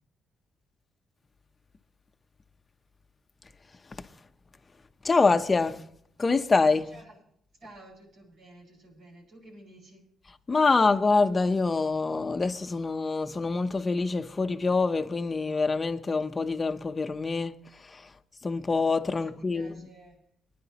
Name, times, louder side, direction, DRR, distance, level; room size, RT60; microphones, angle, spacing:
voice 1, 5.0-5.8 6.2-6.9 10.5-18.1 18.4-19.8, left 4 dB, 30° left, 0.8 m, -25 dB
voice 2, 6.9-7.2 7.6-10.0 19.1-20.2, right 1 dB, 70° right, 5.9 m, -52 dB
23.5 x 10.5 x 2.9 m
cardioid pair, 90°, 0 cm